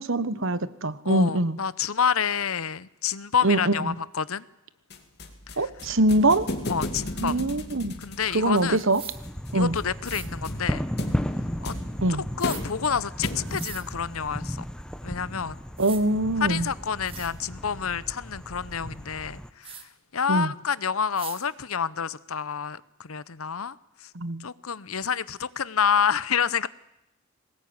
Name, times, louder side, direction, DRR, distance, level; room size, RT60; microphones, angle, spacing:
voice 1, 0.0-1.6 3.4-4.0 5.6-6.5 7.2-8.0 8.3-9.0 9.5-9.7 12.0-12.2 15.8-16.7 20.3-20.5 24.1-24.5, right 2 dB, 65° right, 15 dB, 1.2 m, -23 dB
voice 2, 1.0-4.4 5.6-5.7 6.7-7.4 8.0-8.8 9.5-10.8 11.6-11.7 12.1-14.6 15.0-15.6 16.4-19.8 20.1-23.8 24.0-24.1 24.4-26.7, left 7 dB, 80° left, 18 dB, 0.9 m, -28 dB
sound 1, 4.9-13.8, left 1 dB, 50° left, 2.6 m, -36 dB
sound 2, 8.9-9.2 10.0-10.3 12.4-12.6 13.5-13.8 15.3-15.4 15.8-16.0 16.7-16.8 17.0-17.3 19.6-19.8 21.1-21.4, right 8 dB, 25° right, 2.1 m, -40 dB
sound 3, 9.1-19.5, equal, 5° left, 1.0 m, -35 dB
22.5 x 19.5 x 9.7 m, 0.87 s
head